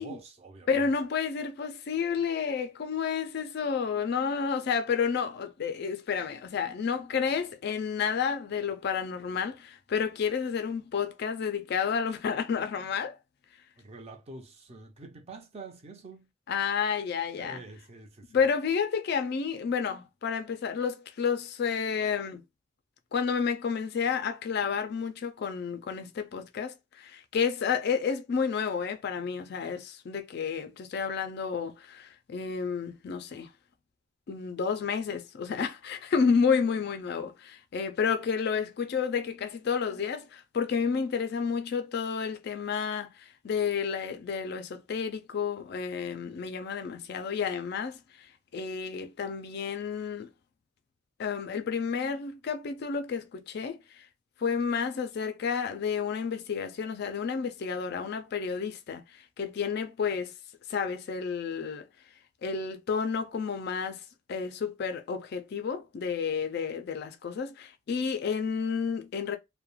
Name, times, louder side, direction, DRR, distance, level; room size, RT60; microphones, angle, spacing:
voice 1, 0.0-0.9 13.8-16.3 17.4-18.4, right 3 dB, 30° right, 0.5 m, -46 dB
voice 2, 0.7-13.2 16.5-17.6 18.3-22.4 23.1-33.5 34.3-50.3 51.2-54.1 54.4-60.4 60.7-61.8 62.4-64.0 64.3-69.4, left 6 dB, 50° left, 0.3 m, -30 dB
2.3 x 2.1 x 3.0 m
head